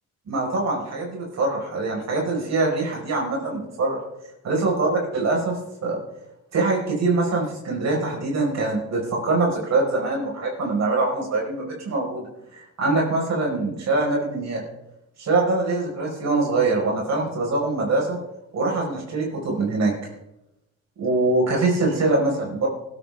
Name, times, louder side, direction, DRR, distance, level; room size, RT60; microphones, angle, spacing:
voice 1, 0.3-4.0 4.4-6.0 6.5-14.6 15.2-18.2 18.5-19.9 21.0-22.7, right 3 dB, 60° right, -1 dB, 5.0 m, -23 dB
19.0 x 13.0 x 3.6 m, 0.90 s
cardioid pair, 90°, 30 cm